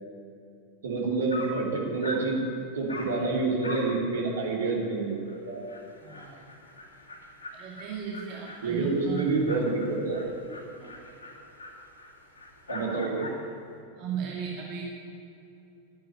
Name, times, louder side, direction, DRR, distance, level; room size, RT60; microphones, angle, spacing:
voice 1, 0.8-2.4 2.7-5.6 8.6-10.2 12.7-13.3, right 3 dB, 65° right, -1 dB, 3.4 m, -28 dB
Dog, 0.9-1.0 1.3-1.6 2.0-2.3 2.9-3.2 3.6-3.9 4.3-4.4 4.8-4.9 5.3-5.4 5.7-13.5, left 1 dB, 75° left, 2.8 m, -42 dB
voice 2, 6.0-6.4 7.5-9.3 10.8-11.0 14.0-14.8, right 7 dB, 40° right, -2 dB, 2.2 m, -36 dB
11.5 x 11.0 x 9.0 m, 2.8 s
figure-of-eight pair, 90°, 0 cm